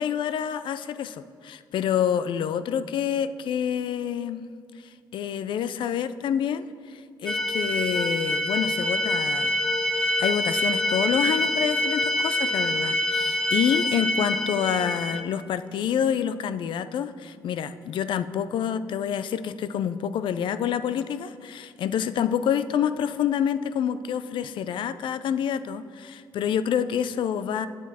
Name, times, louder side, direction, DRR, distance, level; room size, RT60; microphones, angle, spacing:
voice 1, 0.0-4.4 5.1-9.5 10.0-27.7, left 8 dB, 75° left, 13 dB, 0.4 m, -27 dB
sound 1, 7.3-15.2, left 1 dB, 5° left, 0.6 m, -26 dB
8.2 x 7.2 x 4.2 m, 2.4 s
cardioid pair, 95°, 9 cm